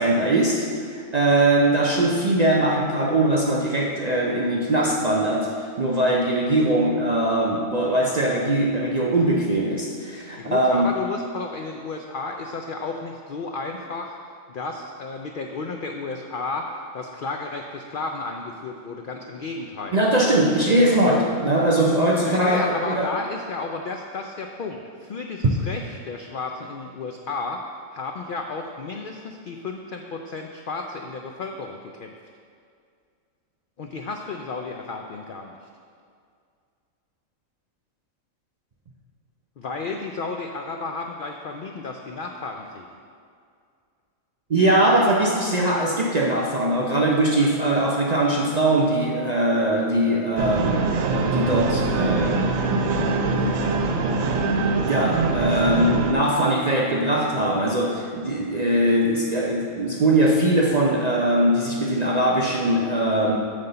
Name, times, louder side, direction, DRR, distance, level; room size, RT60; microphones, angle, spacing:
voice 1, 0.0-10.9 19.9-23.1 44.5-52.5 53.3-53.8 54.9-63.4, right 1 dB, 50° right, -2 dB, 0.5 m, -21 dB
voice 2, 10.3-14.2 14.5-20.0 22.2-27.6 27.9-32.1 33.8-35.6 39.6-42.9, left 3 dB, 80° left, 3 dB, 0.4 m, -32 dB
sound 1, 50.4-56.1, right 3 dB, 75° right, 1.1 m, -23 dB
9.3 x 3.5 x 6.7 m, 2.2 s
omnidirectional pair, 1.4 m